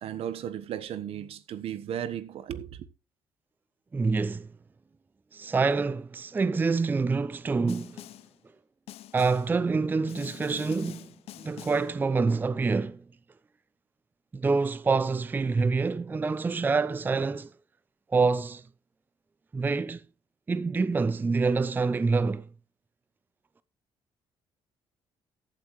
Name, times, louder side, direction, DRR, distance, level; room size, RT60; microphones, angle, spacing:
voice 1, 0.0-2.8, right 9 dB, 70° right, 1.1 m, -35 dB
voice 2, 3.9-4.5 5.3-8.1 9.1-11.1 11.4-13.0 14.3-17.5 18.1-18.6 19.5-20.0 20.5-22.4, right 4 dB, 20° right, 0.4 m, -26 dB
Snare drum, 7.7-8.4 8.9-9.6 10.1-12.0, left 14 dB, 75° left, 0.5 m, -45 dB
15.0 x 8.7 x 3.1 m
cardioid pair, 120°, 10 cm